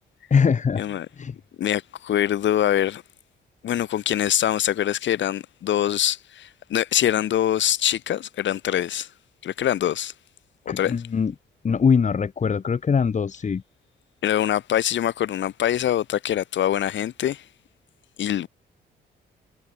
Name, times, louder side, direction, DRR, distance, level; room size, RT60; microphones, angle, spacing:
voice 1, 0.3-0.8 1.2-1.4 10.7-11.3 11.6-13.6, left 6 dB, 35° left, 1.8 m, -22 dB
voice 2, 1.6-3.0 3.6-9.1 9.4-10.1 10.7-10.9 14.2-17.4 18.2-18.5, left 11 dB, 70° left, 2.8 m, -24 dB
cardioid pair, 90°, 20 cm